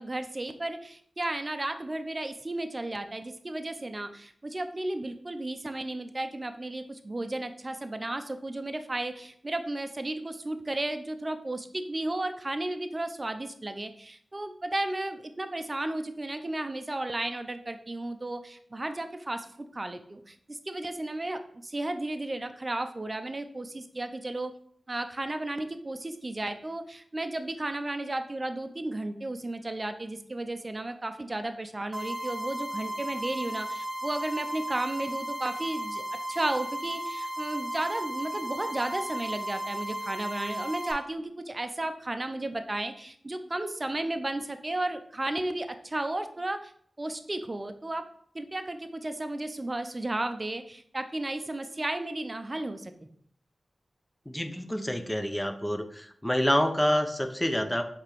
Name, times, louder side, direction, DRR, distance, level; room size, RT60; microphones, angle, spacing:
voice 1, 0.0-24.5 24.9-36.0 36.3-46.7 47.0-48.1 48.3-52.9, right 2 dB, 35° right, 8 dB, 0.5 m, -34 dB
sound 1, 31.9-40.9, right 1 dB, 10° right, 1.5 m, -35 dB
voice 2, 54.3-57.9, equal, 10° left, 7 dB, 0.5 m, -27 dB
4.8 x 3.4 x 3.0 m, 0.62 s
cardioid pair, 40°, 0 cm